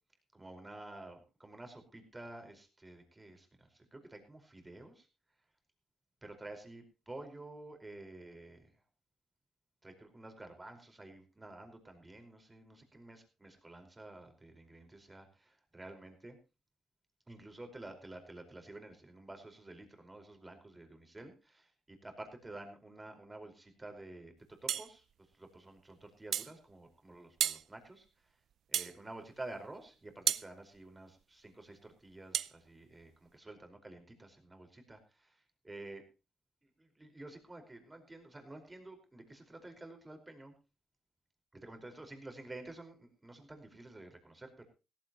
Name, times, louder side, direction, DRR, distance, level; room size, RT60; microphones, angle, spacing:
voice 1, 0.3-5.1 6.2-8.7 9.8-16.4 17.3-25.0 25.3-28.4 28.7-36.0 36.6-40.5 41.6-44.7, right 2 dB, 15° right, 5 dB, 4.8 m, -50 dB
sound 1, 24.7-24.9 26.3-26.5 27.4-27.6 28.7-29.0 30.3-30.5 32.3-32.5, right 10 dB, 70° right, 0.7 m, -32 dB
17.0 x 15.0 x 3.0 m, 0.30 s
cardioid pair, 90°, 0 cm